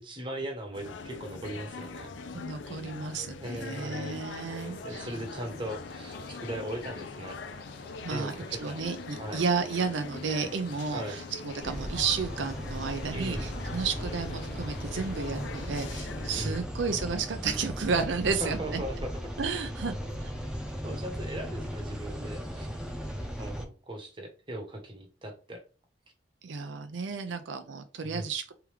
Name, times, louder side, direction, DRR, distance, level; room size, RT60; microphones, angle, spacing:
voice 1, 0.0-2.1 3.4-4.2 4.8-7.4 8.1-8.8 9.2-9.4 10.9-11.2 13.1-13.5 16.4-16.6 18.3-19.3 20.8-22.7 23.4-25.6 28.0-28.3, right 1 dB, 25° right, 3 dB, 1.0 m, -38 dB
sound 1, 0.7-16.6, left 4 dB, 75° left, 0.5 m, -42 dB
voice 2, 2.3-5.1 8.0-8.3 8.6-18.8 19.4-20.3 26.4-28.5, right 5 dB, 75° right, 8 dB, 0.5 m, -32 dB
sound 2, 4.0-16.0, left 3 dB, 55° left, 0.9 m, -49 dB
sound 3, 11.6-23.6, equal, 5° right, 0.7 m, -37 dB
3.4 x 3.4 x 3.2 m, 0.34 s
head